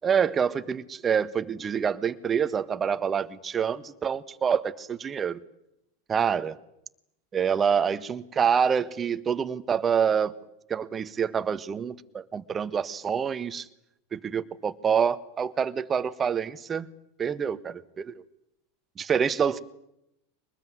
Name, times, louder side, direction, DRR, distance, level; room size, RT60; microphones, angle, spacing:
voice 1, 0.0-5.4 6.1-6.6 7.3-10.4 10.7-13.7 14.1-16.9 17.2-18.1 19.0-19.6, right 7 dB, 25° right, 12 dB, 1.6 m, -26 dB
24.5 x 20.5 x 9.6 m, 0.82 s
hypercardioid pair, 100°, 0 cm